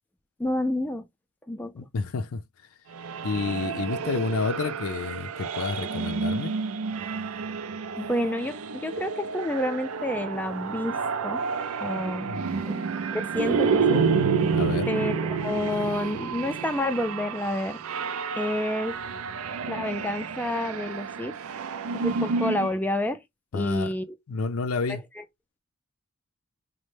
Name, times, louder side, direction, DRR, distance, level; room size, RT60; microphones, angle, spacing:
voice 1, 0.4-1.0 1.5-1.7 8.0-11.4 11.8-12.3 12.7-12.8 13.1-14.1 14.9-17.8 18.4-19.0 19.7-21.3 21.9-23.2 23.5-24.1 24.9-25.2, left 1 dB, 10° left, 0.3 m, -29 dB
voice 2, 1.7-2.4 3.2-6.5 12.2-12.6 14.5-14.9 23.5-23.9 24.3-25.0, left 4 dB, 75° left, 0.5 m, -30 dB
sound 1, 2.9-22.8, right 5 dB, 80° right, 0.4 m, -29 dB
4.2 x 2.1 x 3.2 m
head